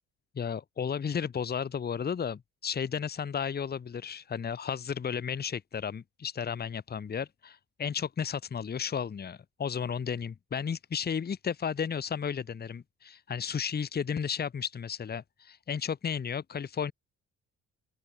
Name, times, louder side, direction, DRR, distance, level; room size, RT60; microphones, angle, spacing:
voice 1, 0.3-16.9, left 7 dB, 30° left, 1.0 m, -33 dB
open air
cardioid pair, 90°, 30 cm